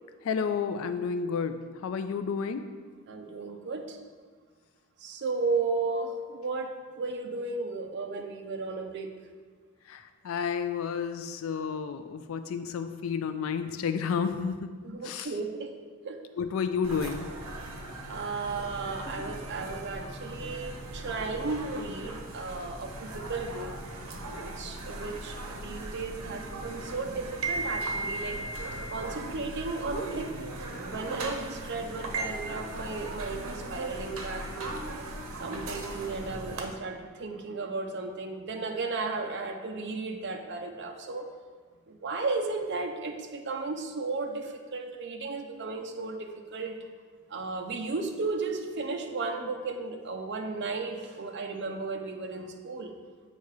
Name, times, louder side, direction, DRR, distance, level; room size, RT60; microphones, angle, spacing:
voice 1, 0.2-2.6 9.9-14.7 15.0-15.3 16.4-17.3, left 6 dB, 70° left, 10 dB, 0.3 m, -31 dB
voice 2, 3.1-4.0 5.0-9.1 14.8-15.7 16.0-16.2 18.1-23.7 24.4-28.4 28.9-30.3 30.8-34.8 35.4-41.3 41.9-46.8 47.3-52.9, right 3 dB, 55° right, 4 dB, 0.5 m, -34 dB
sound 1, 16.8-36.7, right 2 dB, 90° right, 0.7 m, -38 dB
8.2 x 2.8 x 4.7 m, 1.5 s
head